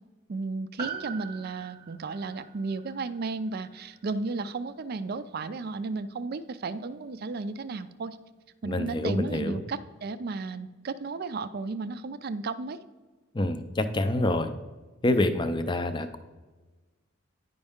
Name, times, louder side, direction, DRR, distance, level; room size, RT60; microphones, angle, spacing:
voice 1, 0.3-8.2 8.6-12.8, right 3 dB, 50° right, 13 dB, 0.4 m, -34 dB
Piano, 0.8-5.4 5.6-5.7, right 6 dB, 20° right, 0.7 m, -43 dB
voice 2, 8.6-9.6 13.3-14.5 15.0-16.2, left 1 dB, 20° left, 9 dB, 0.4 m, -27 dB
9.7 x 5.3 x 3.6 m, 1.3 s
head